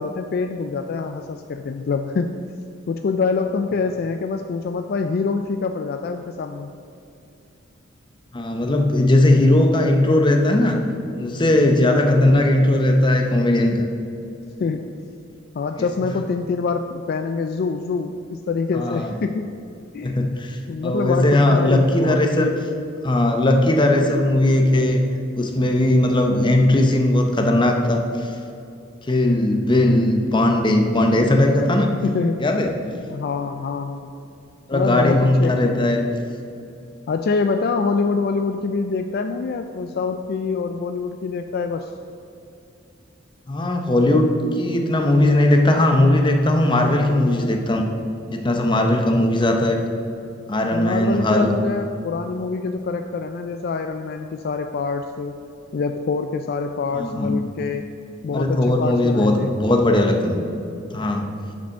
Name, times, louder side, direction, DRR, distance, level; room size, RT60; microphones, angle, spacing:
voice 1, 0.0-2.5 2.9-6.7 14.6-14.9 15.5-19.5 19.9-20.2 20.7-22.8 32.0-32.5 33.1-34.1 34.7-35.9 37.1-41.9 50.7-55.4 55.7-57.8 58.2-59.6, left 4 dB, 50° left, 6 dB, 0.3 m, -25 dB
voice 2, 8.3-10.8 11.2-13.8 18.7-19.1 20.0-22.5 23.0-25.0 25.4-28.3 29.1-31.9 32.4-32.8 34.7-36.0 43.5-47.9 48.3-49.8 50.5-51.5 56.9-57.4 58.3-60.4 60.9-61.3, left 1 dB, 25° left, 3 dB, 0.8 m, -18 dB
6.8 x 5.2 x 6.4 m, 2.7 s
head